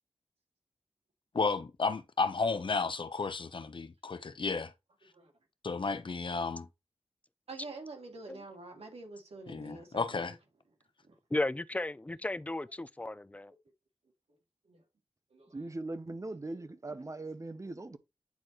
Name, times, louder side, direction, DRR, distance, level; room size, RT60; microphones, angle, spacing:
voice 1, 1.3-4.7 5.6-6.7 9.5-10.4, left 4 dB, 55° left, 0.9 m, -33 dB
voice 2, 7.5-10.3 13.0-13.1 13.5-13.6 14.7-14.8 15.3-15.6 16.6-16.7, right 3 dB, 90° right, 2.7 m, -47 dB
voice 3, 11.3-13.5, left 2 dB, 15° left, 0.5 m, -34 dB
voice 4, 15.5-18.0, right 2 dB, 30° right, 0.8 m, -40 dB
9.3 x 4.2 x 3.0 m
wide cardioid pair, 85°, 10 cm